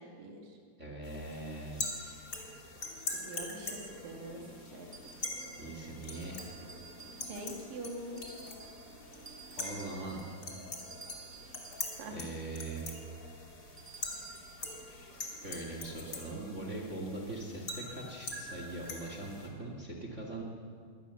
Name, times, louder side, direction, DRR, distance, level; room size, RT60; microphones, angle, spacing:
voice 1, 0.2-0.6 3.1-4.4 4.7-4.9 7.3-8.2 12.0-12.2, right 1 dB, 55° right, 3 dB, 3.5 m, -43 dB
voice 2, 0.8-2.2 5.6-6.4 9.6-10.3 12.1-12.9 14.9-20.4, right 2 dB, 35° right, 1 dB, 1.1 m, -41 dB
sound 1, 1.0-19.5, left 2 dB, 30° left, 2.2 m, -44 dB
sound 2, 3.9-12.7, equal, 75° right, 6.3 m, -57 dB
sound 3, 4.9-5.7 6.1-7.5 8.1-8.9 9.2-12.2 13.8-14.6, right 6 dB, 20° right, 2.3 m, -53 dB
23.0 x 18.0 x 7.1 m, 2.1 s
omnidirectional pair, 5.4 m